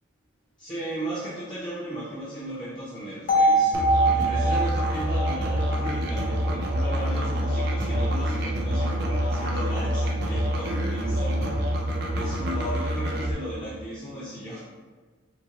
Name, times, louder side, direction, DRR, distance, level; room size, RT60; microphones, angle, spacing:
voice 1, 0.6-14.6, right 1 dB, 25° left, -9 dB, 0.7 m, -35 dB
sound 1, 3.3-7.3, right 2 dB, 45° left, 1.0 m, -24 dB
Musical instrument, 3.7-13.3, equal, 55° right, 0.6 m, -26 dB
4.1 x 3.0 x 2.9 m, 1.4 s
head